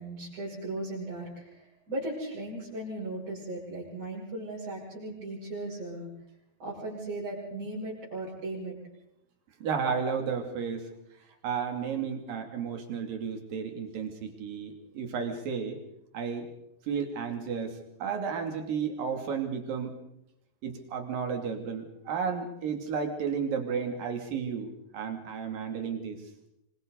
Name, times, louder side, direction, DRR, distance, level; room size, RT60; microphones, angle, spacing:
voice 1, 0.0-6.1 6.6-8.7, right 2 dB, 55° right, -8 dB, 8.1 m, -37 dB
voice 2, 9.6-10.9 11.4-15.8 16.1-16.5 16.9-20.0 20.6-24.7 24.9-26.2, right 6 dB, 70° right, 4 dB, 4.4 m, -33 dB
26.5 x 25.0 x 4.1 m, 0.78 s
omnidirectional pair, 4.3 m